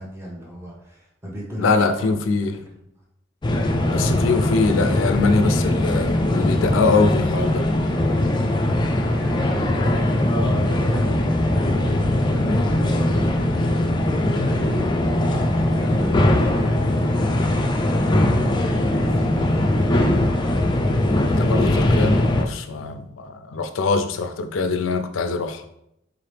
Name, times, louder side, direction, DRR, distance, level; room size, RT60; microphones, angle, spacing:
voice 1, 0.0-2.4 2.7-2.8 9.0-11.1 11.8-20.4 23.6-23.7, equal, 15° right, -3 dB, 0.8 m, -36 dB
voice 2, 1.6-2.6 3.9-7.6 21.2-25.7, left 4 dB, 90° left, 8 dB, 0.4 m, -23 dB
sound 1, 3.4-22.4, left 1 dB, 25° left, 0.4 m, -20 dB
4.0 x 2.9 x 3.3 m, 0.78 s
head